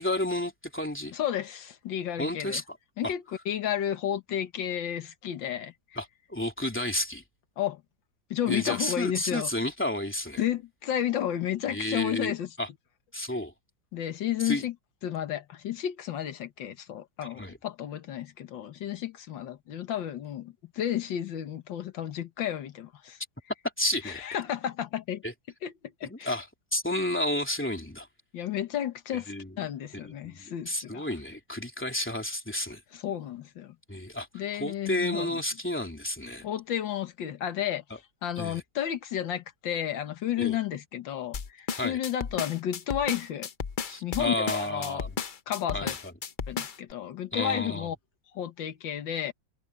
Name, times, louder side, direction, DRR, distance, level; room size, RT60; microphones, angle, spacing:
voice 1, 0.0-1.2 2.2-2.8 3.0-3.1 6.0-7.2 8.4-10.4 11.7-12.3 12.6-12.7 13.1-13.5 14.4-14.6 17.3-17.6 23.8-24.2 25.2-25.3 26.0-26.5 26.7-28.1 29.1-29.5 30.0-32.8 33.9-34.3 34.5-36.4 38.4-38.6 40.4-40.6 41.7-42.0 43.9-45.1 45.7-46.1 47.3-47.9, left 1 dB, 5° left, 3.1 m, -31 dB
voice 2, 1.1-2.6 3.0-5.7 7.6-7.8 8.3-9.5 10.4-12.5 13.9-14.7 15.0-23.2 24.0-25.2 25.6-25.7 26.0-26.4 28.3-31.1 32.9-33.8 34.3-35.4 36.4-37.8 38.2-43.5 44.0-45.0 45.5-46.0 46.5-48.0 48.3-49.3, left 10 dB, 90° left, 2.0 m, -32 dB
sound 1, 41.3-46.9, left 6 dB, 60° left, 0.5 m, -34 dB
omnidirectional pair, 2.0 m